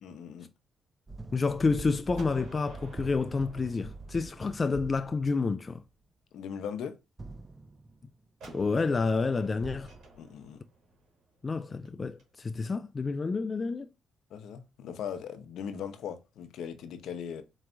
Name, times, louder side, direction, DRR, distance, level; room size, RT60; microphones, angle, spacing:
voice 1, 0.0-0.5 6.3-7.0 10.2-10.6 14.3-17.4, left 8 dB, 75° left, 0.7 m, -39 dB
sound 1, 1.1-5.7 7.2-8.1 9.6-10.0, right 3 dB, 20° right, 0.6 m, -44 dB
voice 2, 1.3-5.8 8.5-9.9 11.4-13.9, left 4 dB, 30° left, 0.3 m, -29 dB
Gunshot gunfire, 2.1-5.0 8.4-12.2, right 2 dB, 70° right, 1.9 m, -52 dB
4.4 x 3.1 x 2.5 m
cardioid pair, 90°, 0 cm